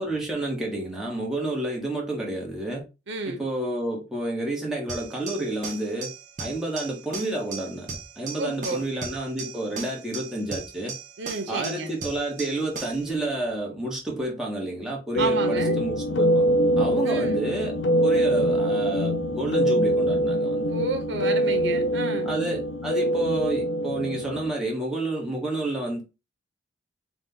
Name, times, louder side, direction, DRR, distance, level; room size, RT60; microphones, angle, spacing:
voice 1, 0.0-2.9 3.3-6.1 6.4-10.9 11.5-16.5 16.8-20.7 22.2-26.0, right 1 dB, 5° right, 1.1 m, -30 dB
voice 2, 3.1-3.4 8.4-8.8 11.2-11.9 15.2-15.8 17.0-17.4 20.7-22.3, right 3 dB, 70° right, 0.9 m, -31 dB
sound 1, 4.9-13.1, right 4 dB, 40° right, 0.8 m, -38 dB
sound 2, 15.1-24.5, right 1 dB, 70° left, 0.7 m, -24 dB
4.1 x 2.4 x 3.8 m
head